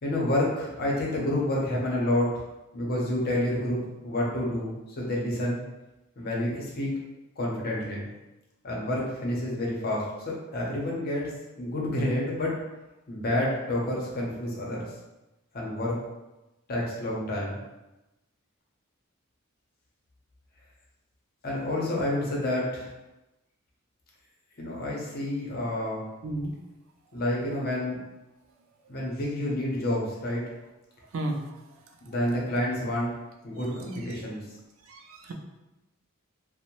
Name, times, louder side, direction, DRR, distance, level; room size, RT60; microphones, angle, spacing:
voice 1, 0.0-2.3 2.7-5.6 6.2-6.9 7.4-8.1 8.6-11.3 11.6-12.5 13.1-14.9 15.5-16.0 16.7-17.6 21.4-22.9 24.6-26.1 27.1-28.0 28.9-30.4 32.0-33.1 33.4-34.4, left 1 dB, 45° left, -3 dB, 0.7 m, -29 dB
voice 2, 26.2-26.6 31.1-31.5 32.1-32.2 34.1-34.2 34.8-35.3, right 1 dB, 70° right, 2 dB, 0.4 m, -33 dB
2.6 x 2.1 x 2.9 m, 1.0 s
head